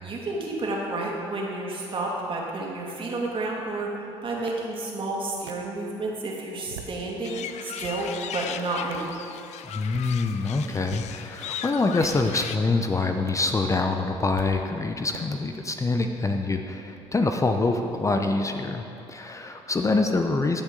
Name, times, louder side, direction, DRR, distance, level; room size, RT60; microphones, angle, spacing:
voice 1, 0.0-3.9 4.2-9.2, right 2 dB, 40° right, -2 dB, 2.4 m, -30 dB
sound 1, 4.5-4.6 5.5-5.6 6.5-7.0 7.5-8.0 8.9-9.1 9.8-10.1 10.8-11.1 11.9-12.4 13.3-13.4 14.4-14.5 15.1-15.2, right 9 dB, 90° right, 0.6 m, -42 dB
sound 2, 7.2-12.6, left 10 dB, 60° left, 0.5 m, -37 dB
voice 2, 9.7-20.6, left 3 dB, 25° left, 5 dB, 0.7 m, -25 dB
14.5 x 7.2 x 3.9 m, 2.7 s
hypercardioid pair, 60°, 13 cm